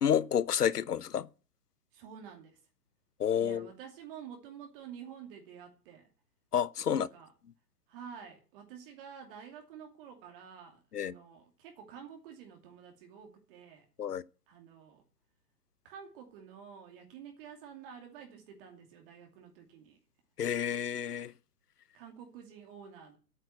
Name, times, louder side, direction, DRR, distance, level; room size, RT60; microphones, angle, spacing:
voice 1, 0.0-1.3 3.2-3.7 6.5-7.1 10.9-11.1 14.0-14.2 20.4-21.3, left 8 dB, 75° left, 0.8 m, -29 dB
voice 2, 1.9-2.6 3.4-6.1 6.9-7.3 7.9-13.8 14.5-15.0 15.8-20.0 21.9-23.2, right 7 dB, 35° right, 2.5 m, -49 dB
9.8 x 9.0 x 7.5 m
figure-of-eight pair, 125°, 48 cm